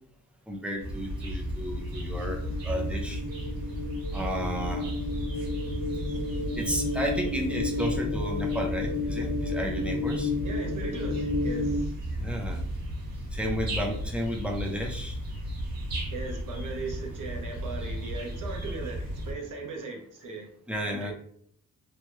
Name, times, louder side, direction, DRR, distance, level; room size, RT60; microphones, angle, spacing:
voice 1, 0.5-3.2 4.1-4.9 6.5-10.3 12.1-12.6 13.3-15.2 20.7-21.1, equal, 5° right, 0 dB, 0.4 m, -33 dB
sound 1, 0.8-19.3, equal, 80° right, 1.5 m, -34 dB
sound 2, 1.2-11.8, left 3 dB, 85° left, 0.9 m, -32 dB
voice 2, 10.4-11.9 16.1-20.5 20.9-21.1, right 3 dB, 65° right, 1 dB, 0.9 m, -38 dB
3.1 x 2.3 x 2.9 m, 0.63 s
wide cardioid pair, 170°, 34 cm